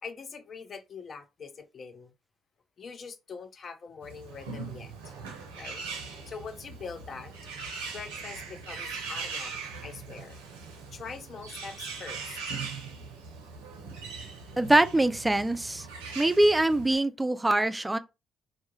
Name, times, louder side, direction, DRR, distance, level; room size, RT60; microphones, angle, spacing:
voice 1, 0.0-2.1 2.8-5.1 5.5-7.3 7.9-10.4 10.9-12.6, left 5 dB, 50° left, 0.4 m, -43 dB
Bird, 4.0-17.0, right 5 dB, 85° right, 0.4 m, -40 dB
voice 2, 14.6-15.9 16.2-18.0, right 1 dB, 15° right, 0.3 m, -23 dB
2.2 x 2.0 x 2.9 m
hypercardioid pair, 45°, 0 cm